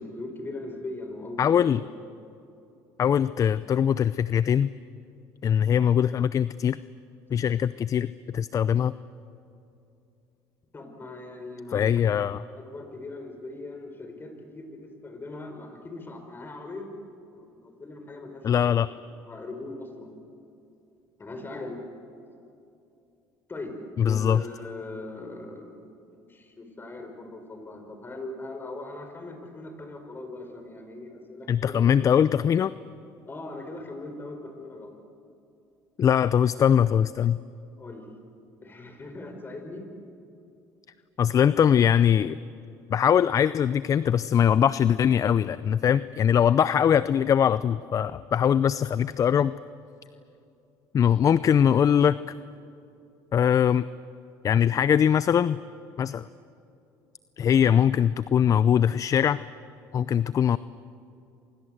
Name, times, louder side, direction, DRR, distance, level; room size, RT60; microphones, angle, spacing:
voice 1, 0.0-1.7 10.7-12.1 12.6-16.9 17.3-18.8 19.2-20.1 21.2-21.8 23.5-23.7 24.0-25.9 26.3-32.1 33.3-35.0 37.8-38.0 38.6-39.9, left 2 dB, 25° left, 5 dB, 5.5 m, -40 dB
voice 2, 1.4-1.8 3.0-4.7 5.4-6.8 7.3-8.9 11.7-12.4 18.4-18.9 24.0-24.4 31.5-32.7 36.0-37.4 41.2-42.4 42.9-49.5 50.9-52.2 53.3-53.9 54.4-55.6 56.0-56.3 57.4-59.4 59.9-60.6, left 8 dB, 40° left, 16 dB, 0.6 m, -22 dB
28.5 x 25.5 x 8.0 m, 2.7 s
supercardioid pair, 85°, 8 cm